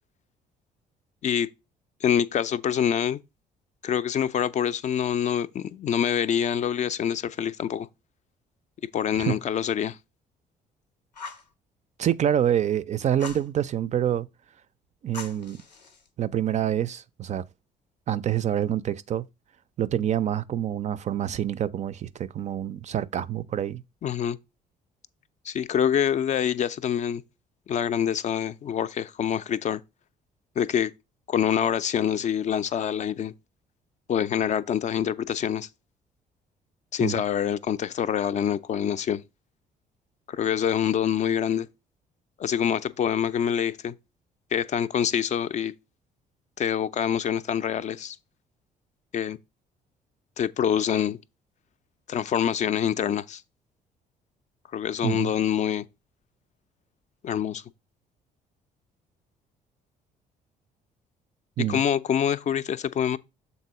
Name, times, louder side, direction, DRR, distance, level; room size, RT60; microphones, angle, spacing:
voice 1, 2.0-3.2 3.8-7.9 8.9-10.0 24.0-24.4 25.4-27.2 27.7-29.8 30.6-30.9 31.3-33.3 34.1-35.7 36.9-39.2 40.3-41.7 42.4-44.0 44.5-45.7 46.6-48.2 49.1-49.4 50.4-51.2 52.1-53.4 54.7-55.9 57.2-57.6 61.7-63.2, left 9 dB, 35° left, 0.4 m, -26 dB
Fire, 11.1-11.5 13.2-13.5 15.1-16.1, left 4 dB, 85° left, 0.6 m, -41 dB
voice 2, 12.0-14.3 15.0-15.6 16.2-17.4 18.1-19.2 19.8-23.8 37.0-37.2 55.0-55.3 61.6-61.8, right 10 dB, 35° right, 0.4 m, -26 dB
7.0 x 4.0 x 4.7 m
figure-of-eight pair, 45°, 21 cm